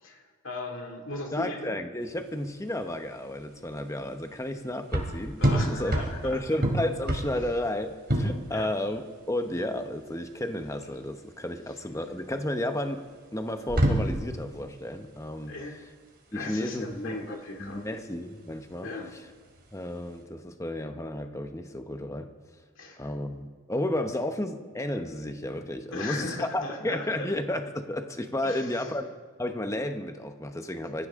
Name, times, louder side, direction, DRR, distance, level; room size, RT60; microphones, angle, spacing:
voice 1, 0.0-1.8 5.4-6.6 7.3-7.5 8.5-8.7 15.5-15.8 16.3-17.9 18.8-19.1 22.8-23.1 25.9-27.3 28.4-28.9, left 2 dB, 60° left, 2 dB, 2.4 m, -38 dB
voice 2, 1.3-5.9 6.2-13.1 13.3-15.5 16.3-19.2 19.7-22.3 23.0-29.1 29.4-31.1, left 1 dB, 15° left, 7 dB, 0.9 m, -32 dB
sound 1, 2.0-20.2, right 1 dB, 45° right, 3.0 m, -31 dB
24.5 x 15.0 x 3.7 m, 1.5 s
head